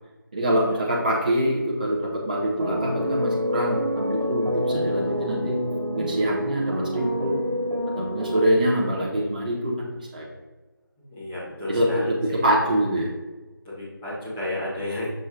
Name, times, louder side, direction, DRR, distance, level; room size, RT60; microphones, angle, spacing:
voice 1, 0.3-5.6 5.9-7.4 7.9-10.3 11.7-13.1, equal, 20° right, -4 dB, 0.8 m, -25 dB
sound 1, 2.6-9.0, equal, 85° right, 1.3 m, -27 dB
voice 2, 11.1-12.4 13.6-15.1, left 1 dB, 5° left, -11 dB, 1.0 m, -33 dB
6.3 x 4.0 x 3.7 m, 1.2 s
figure-of-eight pair, 165°, 12 cm